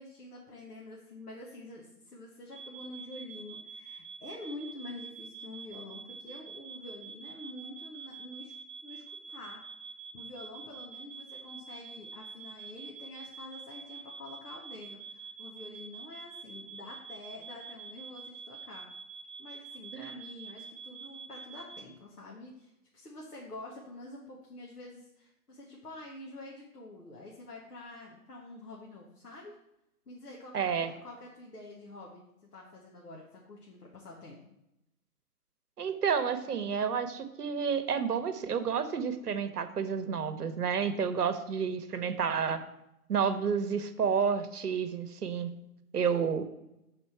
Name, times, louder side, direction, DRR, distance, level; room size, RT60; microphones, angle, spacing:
voice 1, 0.0-8.5 8.8-9.0 9.3-9.6 10.1-18.8 19.4-29.5 30.1-32.2 32.5-34.6, left 2 dB, 75° left, -3 dB, 1.7 m, -47 dB
sound 1, 2.5-21.8, right 5 dB, 35° right, 0.4 m, -47 dB
voice 2, 30.5-30.9 35.8-42.6 43.1-45.5 45.9-46.4, right 6 dB, 75° right, 10 dB, 0.9 m, -30 dB
6.8 x 4.1 x 4.6 m, 0.86 s
hypercardioid pair, 150°, 46 cm